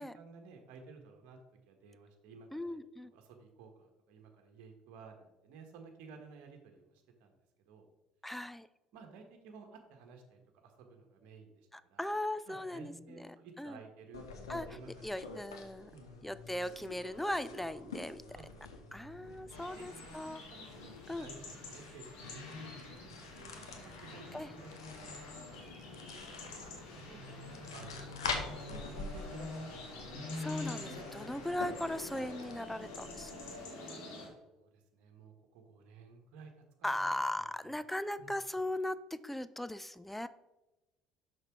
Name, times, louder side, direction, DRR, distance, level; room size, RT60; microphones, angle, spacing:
voice 1, 0.1-1.4 1.7-7.4 7.7-7.9 8.9-12.1 12.5-15.2 15.9-16.2 18.3-18.7 19.2-19.8 20.1-25.2 25.5-26.4 26.9-29.9 34.4-36.5 36.8-37.8 38.2-38.3, right 5 dB, 65° right, 3 dB, 1.4 m, -55 dB
voice 2, 2.5-3.1 8.2-8.7 11.7-13.2 13.6-13.8 14.5-15.9 16.2-18.4 18.9-20.4 21.1-21.3 24.3-24.5 30.4-33.3 36.8-40.3, left 1 dB, 5° left, 14 dB, 0.4 m, -38 dB
sound 1, 14.1-33.6, left 4 dB, 85° left, 0.9 m, -47 dB
sound 2, 19.5-34.3, left 2 dB, 70° left, 2.1 m, -46 dB
6.5 x 5.7 x 4.6 m, 1.0 s
hypercardioid pair, 60°, 2 cm